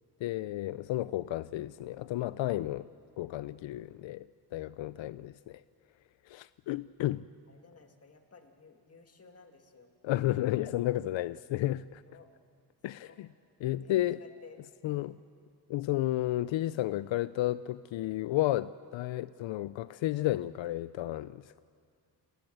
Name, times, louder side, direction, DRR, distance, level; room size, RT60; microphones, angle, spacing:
voice 1, 0.2-2.9 3.2-5.6 6.3-7.3 10.0-12.0 12.8-13.3 13.6-14.2 14.8-15.2 15.7-21.6, left 15 dB, 80° left, 16 dB, 0.5 m, -32 dB
voice 2, 7.5-9.9 12.1-12.3 13.0-13.2 13.8-14.6 14.8-15.2, left 4 dB, 30° left, 5 dB, 2.0 m, -56 dB
29.0 x 19.5 x 7.8 m, 2.2 s
wide cardioid pair, 155°, 45 cm